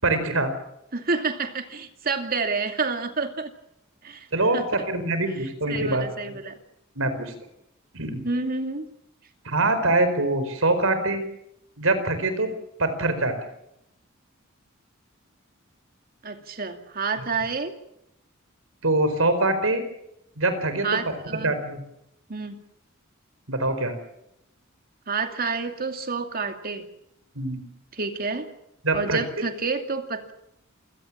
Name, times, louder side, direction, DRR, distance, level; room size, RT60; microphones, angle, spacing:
voice 1, 0.0-0.5 4.3-6.0 6.9-7.3 7.9-8.2 9.4-11.2 11.8-12.5 12.8-13.3 18.8-19.8 20.4-21.1 21.4-21.8 23.5-23.9 27.3-27.6 28.8-29.2, right 2 dB, 80° right, 10 dB, 4.7 m, -24 dB
voice 2, 0.9-3.5 4.0-4.3 4.5-4.6 5.7-6.5 8.2-8.9 16.2-17.7 20.8-21.5 22.3-22.6 25.1-26.9 27.9-28.5 28.9-30.3, right 4 dB, 45° right, 6 dB, 2.6 m, -29 dB
28.0 x 17.5 x 7.5 m, 0.82 s
head